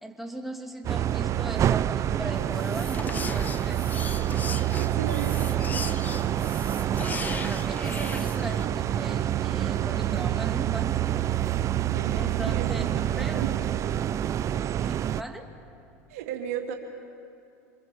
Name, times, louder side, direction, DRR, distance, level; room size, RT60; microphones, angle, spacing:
voice 1, 0.0-4.0 7.4-11.5 12.2-13.5 14.8-15.6, right 1 dB, ahead, 2 dB, 2.7 m, -39 dB
sound 1, 0.8-15.2, right 11 dB, 40° right, 0.6 m, -27 dB
sound 2, 2.3-8.7, left 4 dB, 20° left, 1.0 m, -38 dB
voice 2, 4.8-5.5 11.9-12.2 12.5-13.5 16.1-16.7, right 9 dB, 75° right, 2 dB, 2.9 m, -35 dB
26.0 x 22.0 x 7.3 m, 2.5 s
hypercardioid pair, 90°, 8 cm